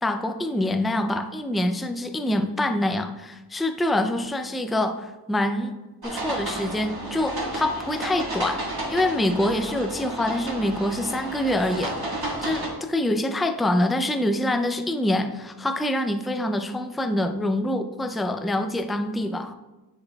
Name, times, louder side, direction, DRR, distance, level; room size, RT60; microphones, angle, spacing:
voice 1, 0.0-5.8 6.0-8.6 8.9-12.0 12.4-19.5, left 1 dB, ahead, 7 dB, 0.4 m, -25 dB
sound 1, 6.0-12.7, right 1 dB, 60° right, 1.7 m, -32 dB
7.7 x 6.9 x 2.3 m, 1.1 s
wide cardioid pair, 40°, 43 cm